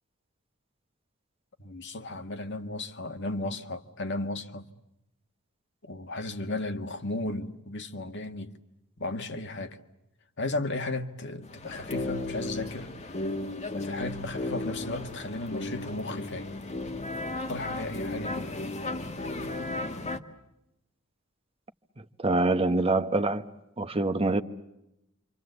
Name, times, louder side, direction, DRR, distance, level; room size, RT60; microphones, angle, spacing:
voice 1, 1.6-4.7 5.8-8.6 9.0-9.8 10.4-13.2 13.7-16.5 17.5-18.5, left 2 dB, 55° left, 1.7 m, -35 dB
sound 1, 11.4-20.2, left 2 dB, 35° left, 1.5 m, -35 dB
voice 2, 22.2-23.5 23.8-24.4, right 2 dB, 25° right, 1.0 m, -25 dB
28.5 x 26.0 x 8.0 m
head